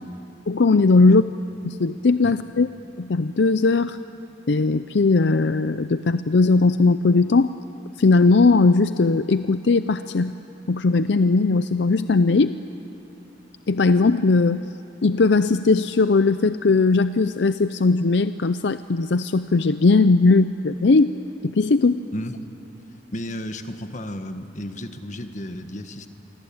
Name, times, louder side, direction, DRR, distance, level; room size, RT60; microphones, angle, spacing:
voice 1, 0.5-1.2 1.6-2.7 3.0-4.0 4.5-7.5 8.0-10.3 10.7-12.6 13.7-14.7 15.0-21.1 21.4-22.0, left 3 dB, 70° left, 12 dB, 0.5 m, -18 dB
voice 2, 22.1-22.5 23.1-26.1, left 1 dB, 40° left, 7 dB, 1.5 m, -33 dB
28.5 x 23.5 x 8.8 m, 2.9 s
head